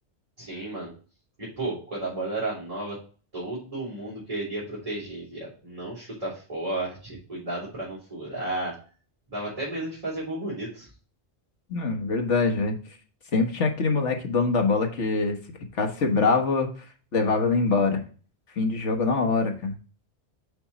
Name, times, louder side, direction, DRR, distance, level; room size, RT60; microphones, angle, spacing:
voice 1, 0.4-0.9 1.4-3.0 3.3-8.7 9.3-10.9, right 2 dB, 30° right, -7 dB, 3.9 m, -33 dB
voice 2, 11.7-12.8 13.3-15.4 15.7-16.7 17.1-18.0 18.5-19.7, left 4 dB, 85° left, 4 dB, 1.7 m, -24 dB
6.3 x 6.0 x 4.2 m, 0.38 s
omnidirectional pair, 1.2 m